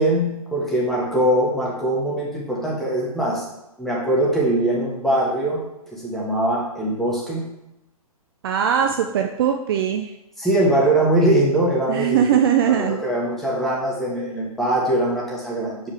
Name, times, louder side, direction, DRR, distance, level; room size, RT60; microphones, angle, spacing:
voice 1, 0.0-3.4 3.8-5.6 5.9-7.5 10.4-12.4 12.7-15.9, right 1 dB, ahead, -5 dB, 1.5 m, -22 dB
voice 2, 8.4-10.1 11.9-13.0, right 9 dB, 40° right, 5 dB, 0.4 m, -20 dB
7.1 x 5.0 x 3.4 m, 0.90 s
figure-of-eight pair, 125°, 19 cm